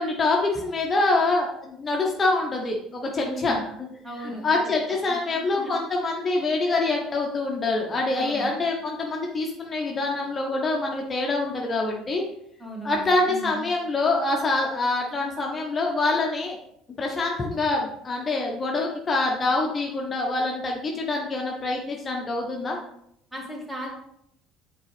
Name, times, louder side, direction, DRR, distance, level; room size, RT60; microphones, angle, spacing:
voice 1, 0.0-3.6 4.2-12.2 12.8-16.6 17.0-22.8, left 2 dB, 30° left, 0 dB, 0.9 m, -25 dB
voice 2, 3.2-3.7 4.0-5.7 8.1-8.5 12.6-13.6 23.3-23.9, right 1 dB, 10° right, -2 dB, 2.2 m, -37 dB
8.2 x 3.8 x 3.3 m, 0.75 s
figure-of-eight pair, 60°, 0 cm